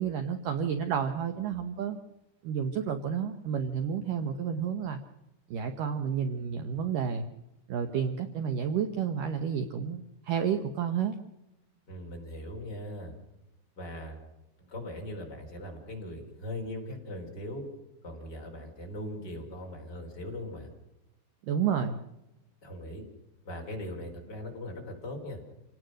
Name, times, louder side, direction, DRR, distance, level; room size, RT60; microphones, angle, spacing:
voice 1, 0.0-2.0 2.4-5.0 5.5-7.3 7.7-11.2 21.5-22.0, right 7 dB, 80° right, 7 dB, 1.9 m, -30 dB
voice 2, 11.9-13.1 13.8-14.2 14.6-17.6 18.0-20.7 22.6-23.0 23.4-25.4, left 1 dB, 25° left, 1 dB, 4.4 m, -40 dB
27.0 x 18.5 x 6.4 m, 0.92 s
omnidirectional pair, 5.4 m